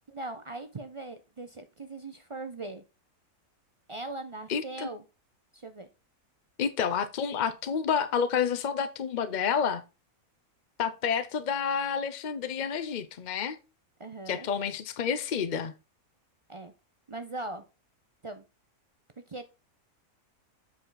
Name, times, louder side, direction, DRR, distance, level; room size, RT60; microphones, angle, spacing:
voice 1, 0.1-2.8 3.9-5.0 5.5-5.9 14.0-14.5 16.5-16.7 17.1-17.6 18.2-18.4 19.3-19.5, right 2 dB, 50° right, 8 dB, 0.3 m, -40 dB
voice 2, 4.5-4.9 6.6-9.8 10.8-13.6 14.3-15.7, left 7 dB, 60° left, 12 dB, 0.5 m, -29 dB
7.9 x 4.8 x 3.8 m, 0.29 s
omnidirectional pair, 1.6 m